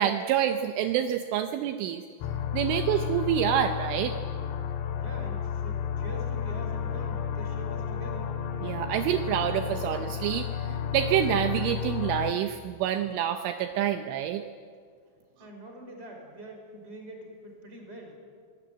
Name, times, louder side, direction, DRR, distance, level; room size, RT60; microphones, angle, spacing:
voice 1, 0.0-2.0 2.5-4.1 8.6-14.4, right 10 dB, 80° right, 7 dB, 3.2 m, -27 dB
sound 1, 2.2-12.3, left 8 dB, 80° left, 3.8 m, -32 dB
voice 2, 5.0-8.3 15.4-18.2, right 1 dB, 10° right, 1 dB, 4.8 m, -44 dB
24.5 x 19.0 x 9.0 m, 2.1 s
omnidirectional pair, 5.9 m